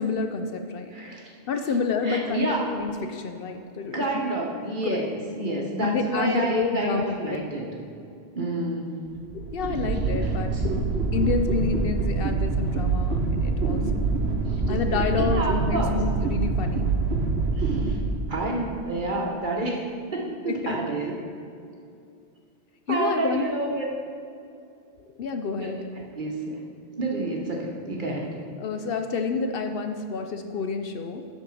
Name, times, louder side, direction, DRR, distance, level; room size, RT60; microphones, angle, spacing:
voice 1, 0.0-0.9 1.5-4.2 4.8-5.0 5.8-7.2 9.3-10.7 11.1-14.1 14.7-16.8 20.5-20.8 22.9-23.5 25.2-25.9 28.6-31.3, left 4 dB, 65° left, 6 dB, 0.7 m, -28 dB
voice 2, 0.9-1.3 2.0-2.8 3.9-7.7 8.3-8.9 10.5-10.6 15.2-16.0 17.6-18.0 18.3-21.1 22.9-23.9 25.6-25.7 26.1-26.6 27.0-28.3, right 2 dB, 50° right, -1 dB, 1.0 m, -29 dB
sound 1, 9.1-18.7, right 3 dB, 75° right, 1.0 m, -25 dB
8.6 x 4.6 x 6.2 m, 2.5 s
omnidirectional pair, 1.1 m